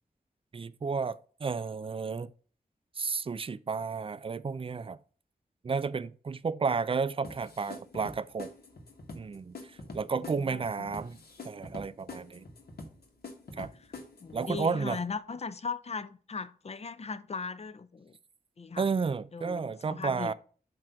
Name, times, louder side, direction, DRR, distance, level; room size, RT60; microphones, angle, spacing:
voice 1, 0.5-2.3 3.0-5.0 5.6-8.5 9.1-9.5 9.9-11.2 11.4-12.4 13.6-13.7 14.3-15.0 18.8-20.3, right 5 dB, 35° right, 0.4 m, -32 dB
sound 1, 7.2-14.6, left 2 dB, 85° left, 1.3 m, -46 dB
voice 2, 10.3-11.0 13.6-13.7 14.2-18.2 18.6-18.9 19.3-20.3, left 4 dB, 40° left, 0.5 m, -38 dB
7.5 x 2.6 x 5.7 m
wide cardioid pair, 80°, 16 cm